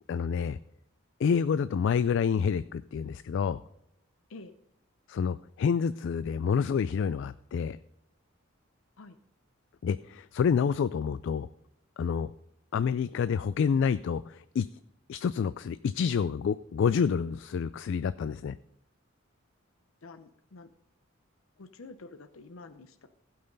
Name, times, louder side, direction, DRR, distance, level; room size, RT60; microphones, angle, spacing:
voice 1, 0.1-0.6 1.2-3.6 5.1-7.8 9.8-11.5 12.0-12.3 12.7-14.7 15.1-18.5, left 6 dB, 60° left, 15 dB, 0.3 m, -28 dB
voice 2, 20.0-20.7 21.6-23.1, left 3 dB, 80° left, 10 dB, 0.7 m, -48 dB
15.5 x 5.6 x 5.3 m, 0.78 s
head